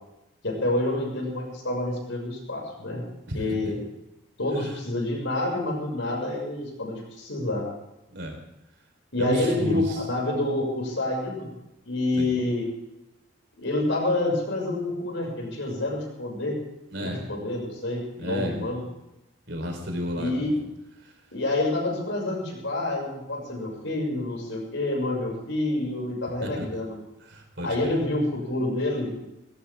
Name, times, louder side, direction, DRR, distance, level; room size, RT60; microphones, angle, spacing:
voice 1, 0.4-3.0 3.3-3.8 4.4-7.7 9.1-11.5 11.8-12.7 13.6-16.6 17.0-18.8 20.1-20.5 21.3-26.9 27.6-29.2, left 2 dB, 65° left, -1 dB, 6.3 m, -28 dB
voice 2, 9.2-10.0 12.2-12.3 16.9-17.2 18.2-18.7 19.5-20.5 21.0-21.1 26.4-26.7 27.2-28.0, equal, 55° right, 3 dB, 4.1 m, -32 dB
19.5 x 18.0 x 3.6 m, 0.92 s
head